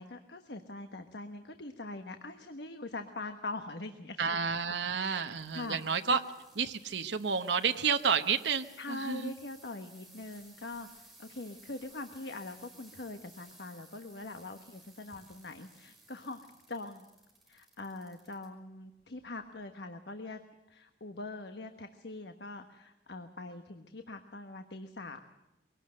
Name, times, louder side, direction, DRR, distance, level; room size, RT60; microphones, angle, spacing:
voice 1, 0.0-4.4 5.0-5.8 6.1-6.2 8.8-16.4 16.7-17.1 17.5-20.4 20.7-25.2, left 2 dB, 70° left, 7 dB, 1.3 m, -43 dB
voice 2, 4.2-6.2 6.6-9.3, right 6 dB, 80° right, 7 dB, 1.0 m, -30 dB
sound 1, 5.0-18.5 19.0-19.4 20.1-20.2, right 2 dB, ahead, 5.6 m, -58 dB
23.0 x 18.0 x 7.7 m, 1.0 s
head